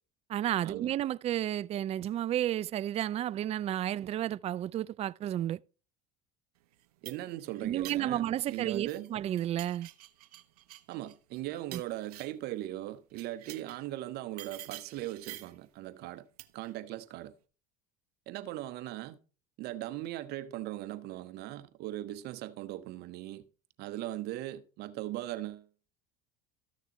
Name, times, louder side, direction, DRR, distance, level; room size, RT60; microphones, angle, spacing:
voice 1, 0.3-5.6 7.6-9.9 11.7-11.8, right 12 dB, 35° right, 0.4 m, -32 dB
sound 1, 6.7-9.1 9.4-12.5 13.1-13.9 14.4-15.6 16.4-16.7, right 15 dB, 90° right, 0.6 m, -49 dB
voice 2, 7.0-9.1 10.9-16.3 16.5-17.3 18.3-19.2 19.6-23.4 23.8-25.7, right 15 dB, 60° right, 1.1 m, -39 dB
13.5 x 6.6 x 3.0 m
supercardioid pair, 90°, 19 cm